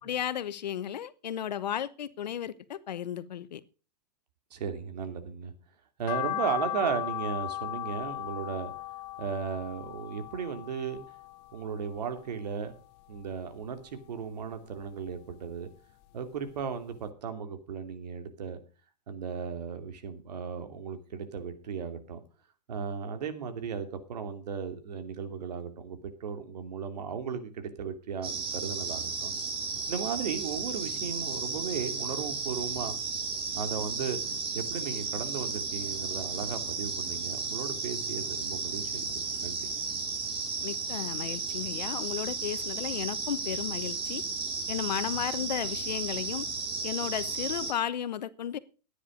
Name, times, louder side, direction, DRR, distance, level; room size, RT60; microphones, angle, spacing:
voice 1, 0.0-3.6 40.6-44.2 44.7-46.5 46.8-48.6, left 10 dB, 80° left, 15 dB, 1.1 m, -34 dB
voice 2, 4.5-5.5 6.0-8.7 9.2-11.0 11.5-12.7 13.1-15.7 16.1-18.6 19.1-22.2 22.7-29.3 29.9-33.0 33.5-34.2 34.5-39.7, right 6 dB, 70° right, 8 dB, 2.7 m, -36 dB
sound 1, 6.1-12.4 12.7-13.9 14.2-15.7 16.0-16.1 16.6-16.7 16.9-17.0, left 14 dB, 40° left, 1.2 m, -37 dB
sound 2, 28.2-47.7, right 4 dB, 25° right, 3.1 m, -34 dB
13.0 x 9.9 x 5.1 m, 0.35 s
hypercardioid pair, 135°, 21 cm